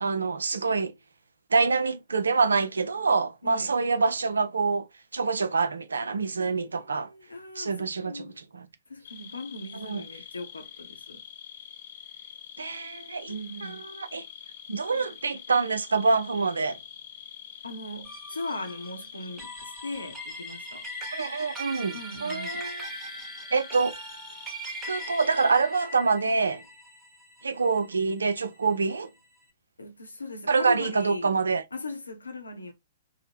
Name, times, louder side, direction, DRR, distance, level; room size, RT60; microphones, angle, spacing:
voice 1, 0.0-0.9 1.5-4.8 5.1-7.1 7.6-8.3 8.5-8.6 9.8-10.0 12.6-13.3 14.0-14.2 14.7-16.8 21.1-22.0 22.2-22.8 23.5-23.9 24.9-26.6 27.4-29.1 30.5-31.6, right 4 dB, 75° right, 0.4 m, -26 dB
voice 2, 3.4-3.8 6.4-8.4 8.9-11.2 13.3-13.8 17.6-20.9 21.9-22.7 29.8-31.4 31.7-32.7, left 2 dB, 85° left, 0.7 m, -39 dB
sound 1, 9.0-25.5, left 9 dB, 50° left, 0.5 m, -46 dB
sound 2, 18.0-28.7, right 1 dB, 15° right, 1.0 m, -41 dB
2.7 x 2.1 x 3.4 m
figure-of-eight pair, 115°, 0 cm